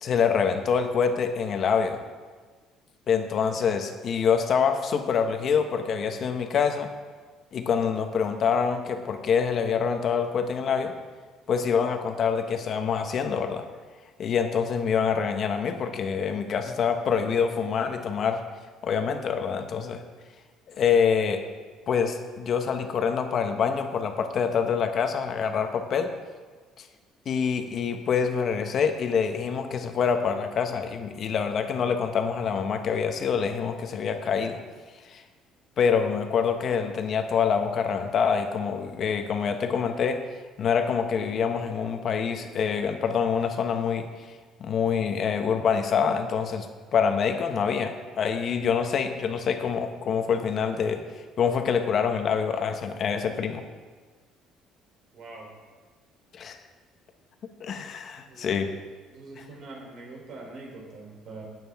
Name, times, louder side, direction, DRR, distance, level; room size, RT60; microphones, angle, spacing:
voice 1, 0.0-2.0 3.1-6.9 7.5-10.9 11.5-13.6 14.2-18.4 18.8-20.0 20.8-21.4 21.9-26.1 26.8-26.9 27.3-34.6 35.0-35.2 35.8-40.2 40.6-44.1 44.6-46.7 46.9-51.0 51.4-53.6 56.3-56.6 57.6-58.7 59.4-59.5, left 6 dB, 45° left, 6 dB, 1.0 m, -26 dB
voice 2, 55.1-55.5 58.3-58.6 59.1-61.5, right 3 dB, 55° right, -1 dB, 3.2 m, -43 dB
12.5 x 9.2 x 3.5 m, 1.4 s
cardioid pair, 140°, 0 cm